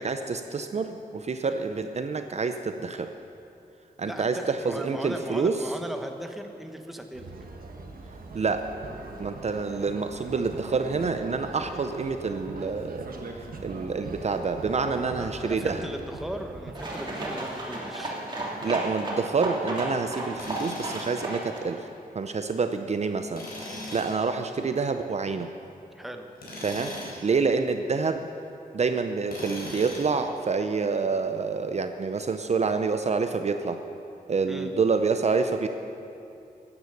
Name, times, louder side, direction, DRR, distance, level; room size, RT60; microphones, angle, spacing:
voice 1, 0.0-3.1 4.0-5.6 8.3-8.7 9.2-13.1 13.6-15.9 18.6-21.8 22.1-25.5 26.6-26.9 27.2-28.3 28.7-33.8 34.3-35.7, right 4 dB, 45° right, 7 dB, 0.6 m, -27 dB
voice 2, 4.0-7.3 14.8-18.1 25.9-26.3 34.5-34.7, right 1 dB, ahead, 4 dB, 1.0 m, -37 dB
sound 1, 7.1-16.8, right 3 dB, 70° right, 1.4 m, -41 dB
sound 2, 16.8-21.7, right 1 dB, 30° right, 2.7 m, -33 dB
Tools, 20.4-21.2 23.3-24.2 26.4-27.2 29.3-30.2, left 1 dB, 75° left, 4.3 m, -39 dB
15.0 x 9.7 x 6.5 m, 2.7 s
wide cardioid pair, 130°, 16 cm